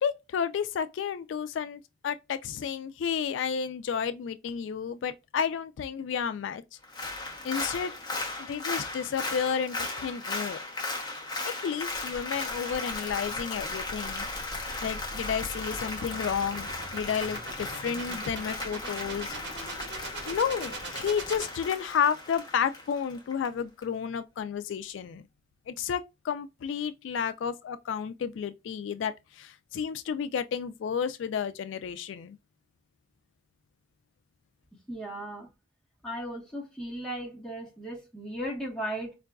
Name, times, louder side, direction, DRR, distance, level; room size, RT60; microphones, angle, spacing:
voice 1, 0.0-6.6 7.4-7.9 8.4-10.6 11.6-14.3 14.5-19.8 20.3-25.2 25.7-32.4, left 7 dB, 80° left, 0.3 m, -31 dB
Applause, 6.8-23.5 23.8-23.9, left 2 dB, 20° left, 0.8 m, -36 dB
sound 1, 11.9-22.3, right 1 dB, 65° right, 1.1 m, -42 dB
voice 2, 34.9-35.5 36.0-39.2, equal, 5° left, 1.1 m, -36 dB
4.6 x 2.4 x 2.2 m
head